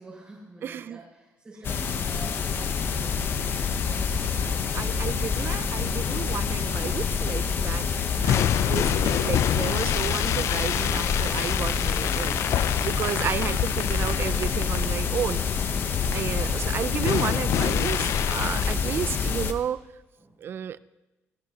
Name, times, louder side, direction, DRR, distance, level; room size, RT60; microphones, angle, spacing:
voice 1, 0.0-4.3 12.6-13.0 14.9-15.4 20.2-20.6, right 2 dB, 25° right, -10 dB, 5.7 m, -47 dB
voice 2, 0.6-1.0 4.2-7.9 8.2-15.4 16.1-19.8 20.4-20.8, right 9 dB, 45° right, 17 dB, 0.4 m, -32 dB
sound 1, 1.6-19.5, left 6 dB, 45° left, 0.8 m, -27 dB
sound 2, 6.0-7.0 7.3-7.5 8.2-15.0 16.1-16.3 17.0-18.7, left 11 dB, 65° left, 0.4 m, -28 dB
29.5 x 11.0 x 2.9 m, 1.1 s
cardioid pair, 150°, 5 cm